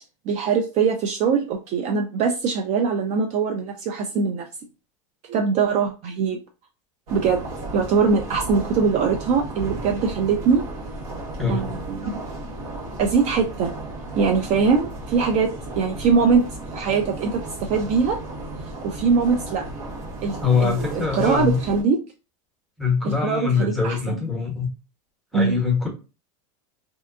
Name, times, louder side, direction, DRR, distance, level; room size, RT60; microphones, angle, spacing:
voice 1, 0.3-4.5 5.3-6.4 7.1-7.5 7.7-10.6 11.5-12.2 13.0-13.7 14.1-16.4 16.7-18.2 18.8-19.6 20.2-22.0 23.0-24.2 25.3-25.6, right 5 dB, 40° right, 4 dB, 0.4 m, -22 dB
sound 1, 7.1-21.8, right 2 dB, 85° right, 1.3 m, -34 dB
voice 2, 11.4-11.7 20.4-21.6 22.8-24.7 25.3-25.9, left 5 dB, ahead, 1 dB, 0.9 m, -23 dB
2.7 x 2.2 x 2.4 m, 0.31 s
supercardioid pair, 120°, 18 cm